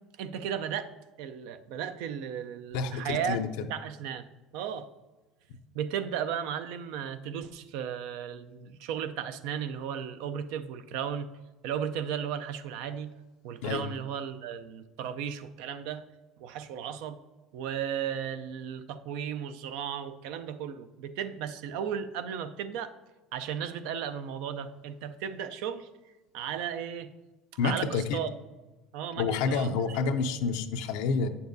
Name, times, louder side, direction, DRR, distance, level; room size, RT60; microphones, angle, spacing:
voice 1, 0.2-0.9 1.2-3.4 3.7-4.2 4.5-4.9 5.7-11.3 11.6-13.1 13.4-16.1 16.4-17.2 17.5-22.9 23.3-25.9 26.3-27.1 27.6-28.3 28.9-30.0, right 8 dB, 80° right, 11 dB, 0.4 m, -35 dB
voice 2, 2.7-3.5 13.6-13.8 27.6-28.2 29.2-31.3, left 5 dB, 80° left, 7 dB, 0.5 m, -28 dB
8.4 x 6.8 x 2.6 m, 1.1 s
supercardioid pair, 95°, 0 cm